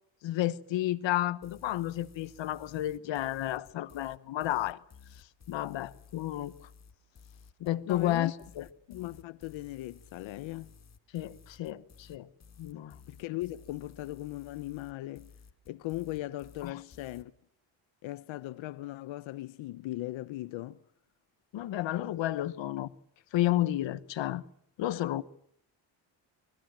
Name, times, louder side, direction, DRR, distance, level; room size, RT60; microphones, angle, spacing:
voice 1, 0.2-4.8 5.5-6.5 7.6-8.6 11.1-12.3 12.6-13.0 16.6-16.8 21.5-22.9 23.3-24.4 24.8-25.2, left 14 dB, 70° left, 1.2 m, -31 dB
sound 1, 1.4-17.2, left 6 dB, 35° left, 1.6 m, -55 dB
voice 2, 7.9-8.3 8.9-10.7 13.1-15.3 15.7-17.3 18.0-20.8, left 16 dB, 85° left, 0.9 m, -38 dB
26.0 x 20.5 x 7.4 m
cardioid pair, 120°, 46 cm